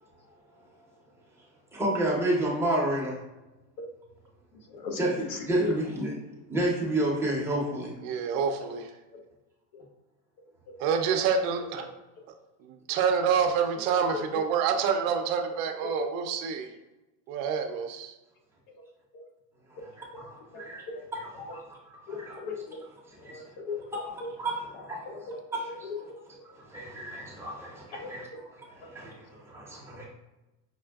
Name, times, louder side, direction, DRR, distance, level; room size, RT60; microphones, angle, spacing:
voice 1, 1.7-3.2 5.0-5.1 5.5-6.1 6.5-7.9 20.1-20.8 21.4-21.6 22.2-22.4 23.2-23.4 24.4-25.0 25.5-25.9 26.7-28.2 28.6-30.0, right 1 dB, 5° right, -4 dB, 0.6 m, -30 dB
voice 2, 4.7-5.7 6.3-6.4 8.6-8.7 9.1-9.2 9.7-9.8 10.7-10.8 11.8-11.9 13.8-14.5 15.8-16.1 19.1-19.2 20.5-21.0 21.5-21.6 22.1-22.8 23.2-24.3 24.7-26.2 27.9-28.4 28.8-28.9, left 4 dB, 55° left, 2 dB, 0.7 m, -38 dB
voice 3, 8.0-8.8 10.8-11.9 12.9-16.7 17.3-18.1, right 6 dB, 60° right, 5 dB, 0.5 m, -27 dB
5.3 x 2.4 x 2.3 m, 1.0 s
supercardioid pair, 140°, 49 cm